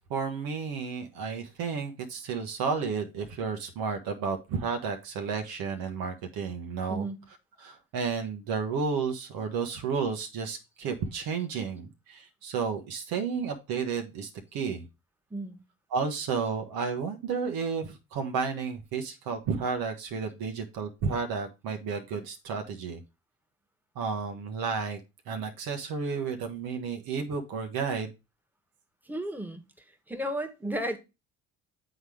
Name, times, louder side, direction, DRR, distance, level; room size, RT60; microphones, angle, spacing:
voice 1, 0.1-7.0 7.6-14.9 15.9-23.0 23.9-25.0 25.3-28.1, right 5 dB, 70° right, 1.2 m, -32 dB
voice 2, 15.3-15.6 29.0-31.0, right 1 dB, 5° right, 1.5 m, -34 dB
7.8 x 4.0 x 4.8 m
hypercardioid pair, 55°, 38 cm